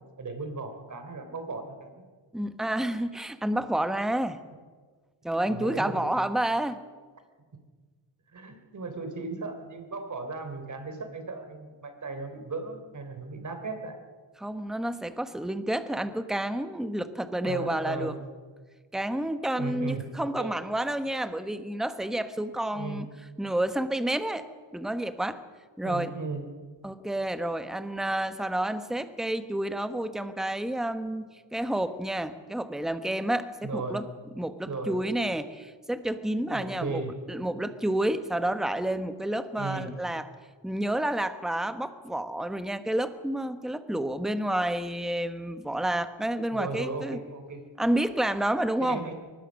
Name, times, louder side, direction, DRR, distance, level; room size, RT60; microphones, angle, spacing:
voice 1, 0.0-2.0 5.4-6.1 8.3-14.0 17.4-18.2 19.6-20.5 22.7-23.1 25.8-26.5 33.6-34.1 34.7-35.0 36.5-37.1 39.6-39.9 46.5-47.6 48.8-49.1, right 3 dB, 40° right, 7 dB, 3.5 m, -36 dB
voice 2, 2.3-4.4 5.2-6.8 14.4-18.1 18.9-23.1 23.4-24.4 24.7-25.4 25.8-26.1 26.8-34.1 34.4-37.0 37.3-40.3 40.6-47.2 47.8-49.0, right 1 dB, ahead, 10 dB, 1.1 m, -29 dB
23.0 x 20.0 x 6.4 m, 1.5 s
cardioid pair, 115°, 47 cm